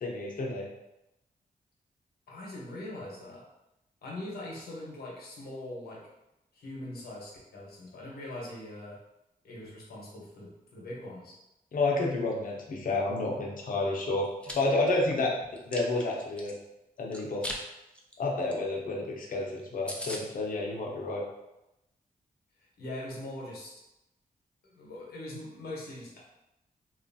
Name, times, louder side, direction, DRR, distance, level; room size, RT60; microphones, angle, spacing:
voice 1, 0.0-0.7 11.7-15.3 15.7-16.5 17.0-17.6 18.2-21.2, left 2 dB, 60° left, -1 dB, 0.7 m, -30 dB
voice 2, 2.3-3.4 4.0-6.0 6.5-9.0 9.4-11.3 22.6-23.7 24.6-26.2, left 1 dB, 85° left, -4 dB, 0.9 m, -42 dB
Chewing mastication, 14.2-14.5 15.0-16.5 17.1-17.6 17.9-18.1 18.5-18.6 18.8-18.9 19.3-19.4 19.6-19.7 19.9-20.2, left 1 dB, 5° left, 0.5 m, -38 dB
2.9 x 2.4 x 2.6 m, 0.91 s
cardioid pair, 60°, 16 cm